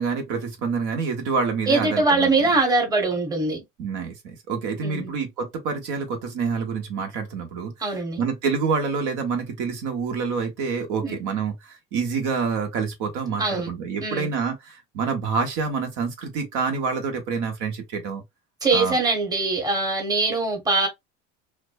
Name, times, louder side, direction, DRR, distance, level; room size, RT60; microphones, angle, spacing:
voice 1, 0.0-2.5 3.8-7.7 8.2-18.2 18.7-19.0, right 5 dB, 65° right, 0.9 m, -27 dB
voice 2, 1.7-3.6 4.8-5.1 7.8-8.2 11.0-11.2 13.4-13.7 14.0-14.3 18.6-20.9, right 3 dB, 10° right, 1.0 m, -22 dB
2.5 x 2.2 x 2.2 m
supercardioid pair, 110°, 33 cm